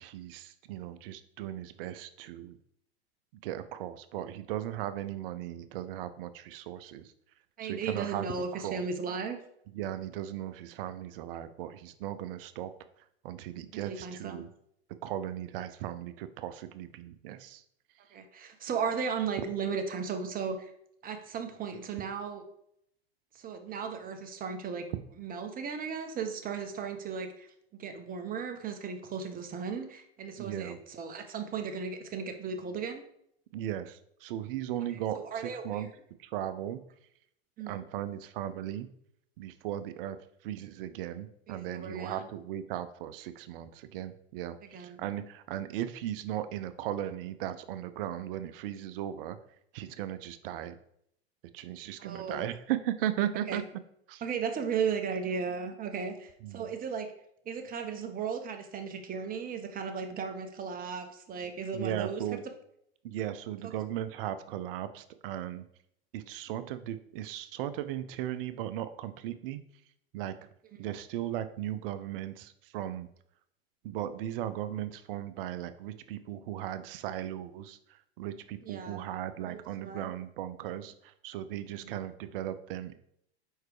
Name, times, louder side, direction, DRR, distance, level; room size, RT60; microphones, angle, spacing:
voice 1, 0.0-2.6 3.4-7.1 7.6-8.3 8.5-8.8 9.7-12.7 13.0-14.5 15.0-17.6 30.4-30.8 33.5-35.9 36.2-36.8 37.7-38.9 39.4-49.4 49.7-50.8 51.5-53.6 54.1-54.2 56.4-56.7 61.7-62.4 63.0-65.6 66.1-69.6 70.1-70.3 70.8-73.1 73.8-83.0, right 12 dB, 60° right, 12 dB, 0.6 m, -37 dB
voice 2, 7.6-9.4 13.7-14.4 18.1-20.7 21.0-22.4 23.3-24.9 25.2-33.0 35.1-35.8 37.6-37.8 41.5-42.3 44.7-45.0 52.0-52.5 53.5-53.6 54.2-57.1 57.4-62.2 78.6-79.1 79.4-80.1 81.7-81.9, right 6 dB, 25° right, 6 dB, 1.0 m, -36 dB
4.8 x 4.6 x 4.8 m, 0.72 s
hypercardioid pair, 100°, 31 cm